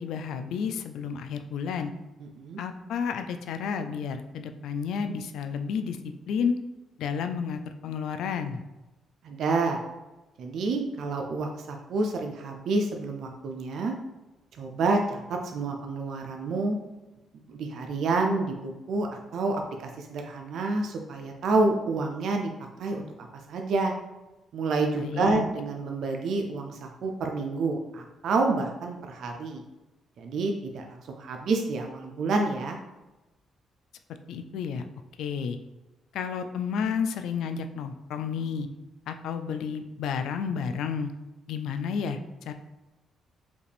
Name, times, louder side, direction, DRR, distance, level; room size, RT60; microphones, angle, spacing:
voice 1, 0.0-1.9 2.6-6.0 6.3-6.6 7.0-8.6 25.0-25.4 34.3-34.8 35.2-35.6 36.1-38.7 39.1-41.1 41.5-42.2 42.5-42.6, left 6 dB, 80° left, 8 dB, 0.3 m, -31 dB
voice 2, 2.2-2.6 9.2-9.8 10.4-13.9 14.6-16.8 17.5-22.5 22.8-23.9 24.5-29.6 30.2-32.8, right 3 dB, 70° right, 2 dB, 0.4 m, -28 dB
5.1 x 2.5 x 3.3 m, 1.1 s
cardioid pair, 90°, 0 cm